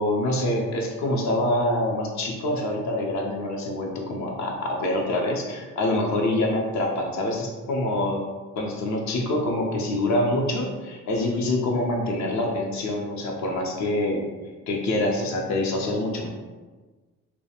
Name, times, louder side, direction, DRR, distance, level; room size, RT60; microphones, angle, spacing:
voice 1, 0.0-8.2 8.6-14.2 14.7-16.3, left 1 dB, 70° left, 0 dB, 0.5 m, -25 dB
2.3 x 2.1 x 2.8 m, 1.3 s
cardioid pair, 90°, 30 cm